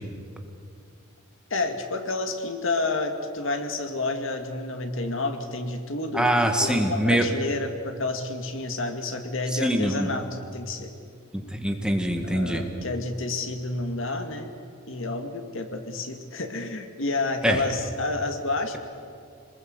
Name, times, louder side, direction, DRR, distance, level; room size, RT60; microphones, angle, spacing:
voice 1, 1.5-6.3 6.6-10.9 12.2-14.5 14.9-18.8, left 2 dB, 65° left, 6 dB, 2.2 m, -30 dB
voice 2, 6.1-7.3 9.5-10.1 11.3-12.6 17.4-17.6, right 1 dB, 5° right, 4 dB, 1.9 m, -24 dB
27.0 x 20.5 x 8.0 m, 2.3 s
head